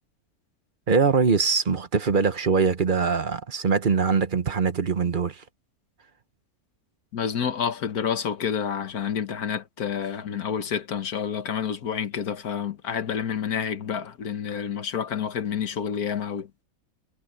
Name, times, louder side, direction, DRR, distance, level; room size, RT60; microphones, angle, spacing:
voice 1, 0.9-5.4, right 5 dB, 40° right, 1.0 m, -22 dB
voice 2, 7.1-16.5, left 8 dB, 80° left, 1.7 m, -29 dB
omnidirectional pair, 1.5 m